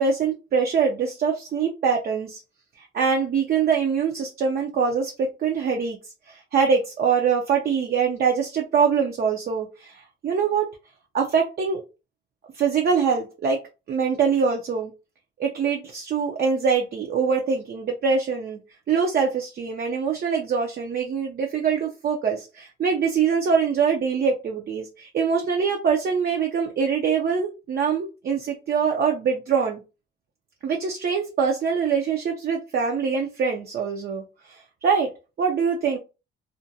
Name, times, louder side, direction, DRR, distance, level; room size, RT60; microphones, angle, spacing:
voice 1, 0.0-2.4 2.8-10.7 11.1-11.8 12.5-13.6 13.9-14.9 15.4-18.6 18.9-29.8 30.6-35.1 35.4-36.0, right 6 dB, 50° right, 2 dB, 0.5 m, -24 dB
2.5 x 2.1 x 2.6 m, 0.29 s
cardioid pair, 90°, 20 cm